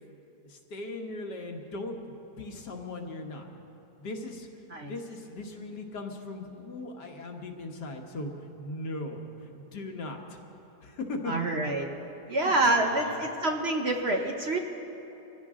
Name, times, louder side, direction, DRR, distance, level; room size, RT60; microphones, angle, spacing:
voice 1, 0.4-3.5 4.0-4.5 4.8-10.4 10.8-11.5 12.3-13.2, left 2 dB, 75° left, 2 dB, 1.9 m, -39 dB
voice 2, 11.3-11.9 12.3-14.6, right 2 dB, 45° right, 2 dB, 1.0 m, -27 dB
24.5 x 15.5 x 3.7 m, 3.0 s
omnidirectional pair, 1.8 m